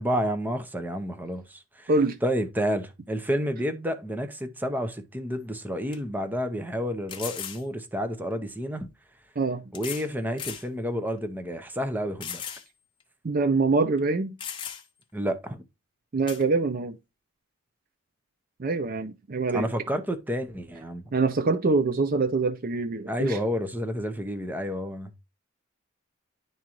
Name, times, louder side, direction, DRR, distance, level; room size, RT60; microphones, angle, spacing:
voice 1, 0.0-1.9 2.2-8.9 9.7-12.4 15.1-15.6 19.5-21.0 23.1-25.1, equal, 10° right, 0.7 m, -30 dB
sound 1, 5.3-5.4 5.9-6.0 7.1-7.6 8.8-8.9 9.7-10.1 10.4-10.7 11.2-11.3 12.2-12.7 13.0-13.1 14.0-14.1 14.4-15.0 16.3-16.4, left 8 dB, 25° left, 0.8 m, -37 dB
voice 2, 13.2-14.3 16.1-17.0 18.6-19.7 21.1-23.4, right 3 dB, 40° right, 0.5 m, -24 dB
10.5 x 3.7 x 3.0 m
head